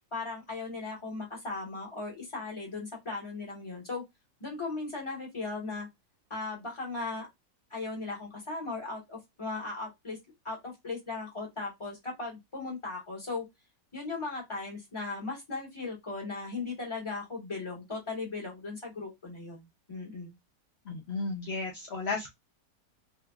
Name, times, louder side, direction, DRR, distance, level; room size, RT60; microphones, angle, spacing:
voice 1, 0.1-4.0 4.4-5.9 6.3-7.3 7.7-10.2 10.4-13.4 13.9-20.4, left 3 dB, 20° left, 1.2 m, -37 dB
voice 2, 20.9-22.3, left 3 dB, 65° left, 0.6 m, -34 dB
3.0 x 2.6 x 2.3 m
omnidirectional pair, 2.0 m